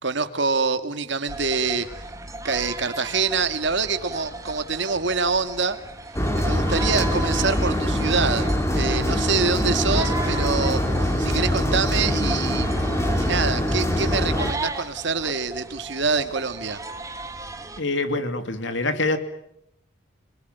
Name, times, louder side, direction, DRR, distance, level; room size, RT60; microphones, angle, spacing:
voice 1, 0.0-1.9 2.4-5.8 6.4-12.8 13.1-16.8, right 4 dB, 60° right, 9 dB, 2.1 m, -25 dB
sound 1, 1.3-17.8, right 2 dB, 15° right, 2.0 m, -36 dB
sound 2, 6.1-14.5, equal, 15° left, 3.3 m, -23 dB
voice 2, 17.8-19.2, left 2 dB, 60° left, 9 dB, 2.8 m, -25 dB
27.5 x 22.0 x 9.4 m, 0.77 s
head